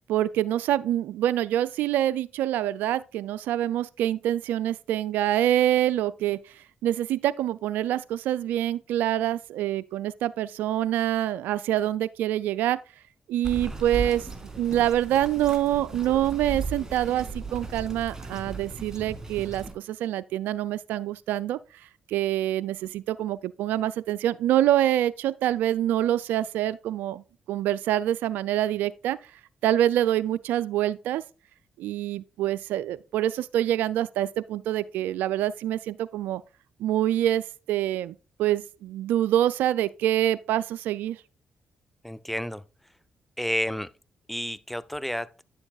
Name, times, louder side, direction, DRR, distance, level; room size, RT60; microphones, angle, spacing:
voice 1, 0.1-12.8 13.3-14.3 14.6-21.6 22.1-27.2 27.5-29.2 29.6-31.2 31.8-36.4 36.8-41.2, right 12 dB, 80° right, 0.3 m, -26 dB
Bird vocalization bird call bird song, 13.4-19.7, right 3 dB, 20° right, 2.3 m, -36 dB
voice 2, 42.0-42.6 43.4-43.9 44.3-45.3, left 1 dB, 5° left, 0.5 m, -30 dB
9.6 x 7.0 x 2.3 m
supercardioid pair, 50°, 3 cm